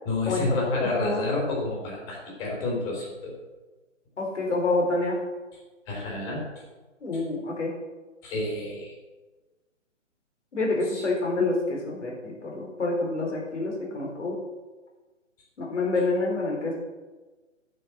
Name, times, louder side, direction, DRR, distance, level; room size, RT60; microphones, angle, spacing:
voice 1, 0.1-3.4 5.9-6.4 8.2-8.9 10.9-11.0, left 2 dB, 20° left, -2 dB, 3.6 m, -29 dB
voice 2, 0.8-1.2 4.2-5.2 7.0-7.7 10.5-14.4 15.6-16.8, left 2 dB, 65° left, 0 dB, 4.2 m, -27 dB
9.9 x 7.8 x 6.1 m, 1.2 s
hypercardioid pair, 150°, 38 cm